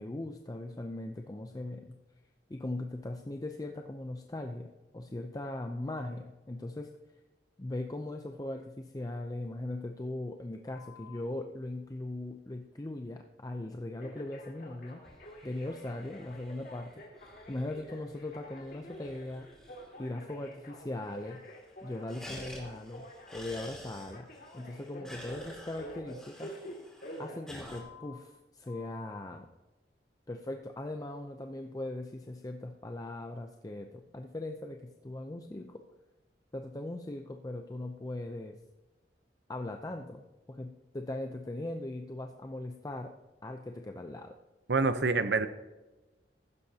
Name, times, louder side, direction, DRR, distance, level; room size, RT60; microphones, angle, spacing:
voice 1, 0.0-2.0 2.5-6.9 7.6-15.0 15.4-16.9 17.2-19.5 20.0-21.4 21.8-24.3 24.5-26.5 27.2-29.5 30.3-35.8 36.5-38.6 39.5-43.1 43.4-44.4, left 2 dB, 20° left, 4 dB, 0.5 m, -39 dB
Telephone, 10.7-11.2 14.0-28.2 28.7-29.2, equal, 55° left, 2.2 m, -49 dB
sound 1, 14.9-20.2 20.5-20.6 20.8-21.4 21.6-27.8, left 1 dB, 5° left, 2.4 m, -50 dB
voice 2, 44.7-45.5, right 4 dB, 70° right, 11 dB, 0.8 m, -26 dB
15.0 x 11.5 x 2.8 m, 1.1 s
head